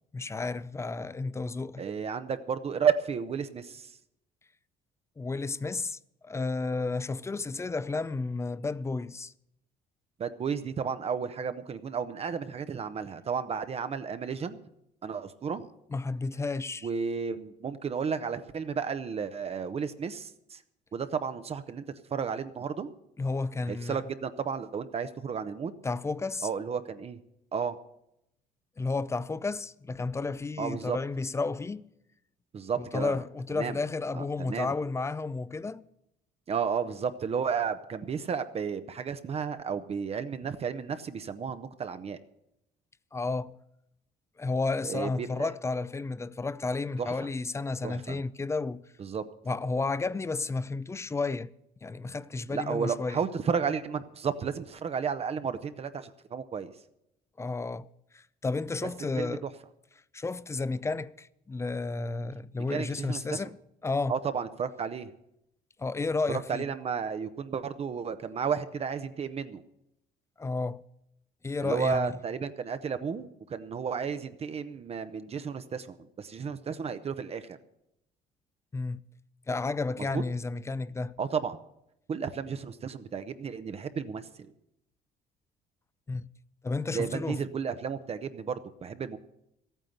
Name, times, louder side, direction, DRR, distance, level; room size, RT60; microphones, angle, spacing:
voice 1, 0.1-1.8 5.2-9.3 15.9-16.9 23.2-24.0 25.8-26.5 28.8-31.8 32.8-35.8 43.1-43.6 44.4-48.8 49.5-51.5 51.8-53.2 57.4-57.9 58.1-59.5 60.1-63.5 63.8-64.2 65.8-66.6 70.4-70.8 71.4-72.1 78.7-79.0 79.5-81.2 86.1-86.3 86.6-87.4, left 3 dB, 15° left, 0.4 m, -32 dB
voice 2, 1.8-4.0 10.2-14.6 15.0-15.6 16.8-20.6 20.9-21.8 22.1-22.9 23.7-25.7 26.4-27.2 27.5-27.8 30.6-31.0 32.5-33.2 33.6-33.8 34.1-34.7 36.5-42.2 44.8-45.6 47.0-47.1 47.8-48.2 49.0-49.2 52.5-56.7 59.2-59.4 62.7-63.4 64.1-65.1 66.3-69.6 71.6-77.6 80.0-80.2 81.2-81.6 82.1-84.3 86.9-89.2, right 6 dB, 35° right, 0.8 m, -32 dB
13.5 x 9.1 x 7.9 m
cardioid pair, 110°, 17 cm